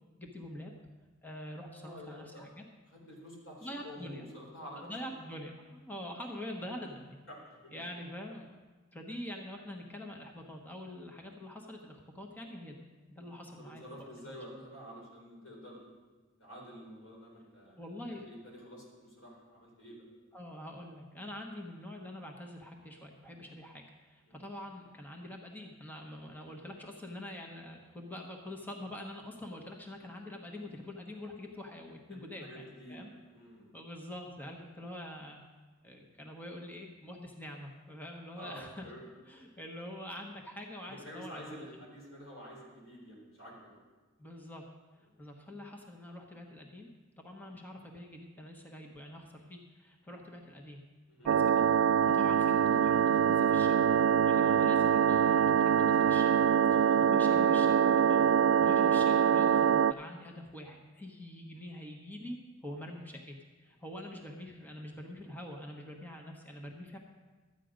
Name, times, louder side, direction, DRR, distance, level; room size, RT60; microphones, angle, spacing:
voice 1, 0.2-0.7 1.2-2.6 3.6-4.2 4.7-7.2 7.7-8.6 8.9-12.8 13.1-14.3 17.8-18.3 20.3-32.6 32.9-33.1 33.7-35.4 35.8-38.9 39.3-41.6 44.2-44.6 45.2-46.9 47.2-50.8 51.2-53.8 54.2-58.2 58.6-67.0, left 1 dB, 10° left, 1 dB, 1.0 m, -45 dB
voice 2, 1.7-2.4 2.9-4.9 7.3-7.8 13.3-15.9 16.4-17.8 18.2-20.0 24.3-24.4 32.1-33.7 38.4-39.0 39.3-39.5 40.8-43.8 45.0-45.1 51.1-51.3 56.6-57.3, equal, 90° left, -3 dB, 4.3 m, -49 dB
sound 1, 51.3-59.9, right 8 dB, 75° right, 0.3 m, -24 dB
13.0 x 9.1 x 5.1 m, 1.3 s
head